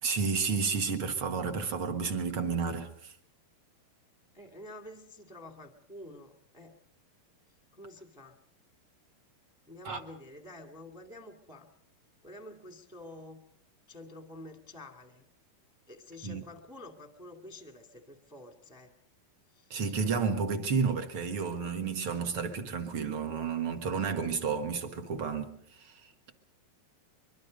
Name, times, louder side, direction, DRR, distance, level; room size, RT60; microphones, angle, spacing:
voice 1, 0.0-3.1 9.8-10.0 16.2-16.4 19.7-26.1, right 5 dB, 50° right, 1.8 m, -31 dB
voice 2, 4.3-6.7 7.7-8.4 9.7-11.7 12.2-13.4 13.9-15.3 15.9-18.9 19.5-19.7, left 1 dB, ahead, 0.9 m, -48 dB
24.0 x 23.0 x 5.2 m
omnidirectional pair, 4.3 m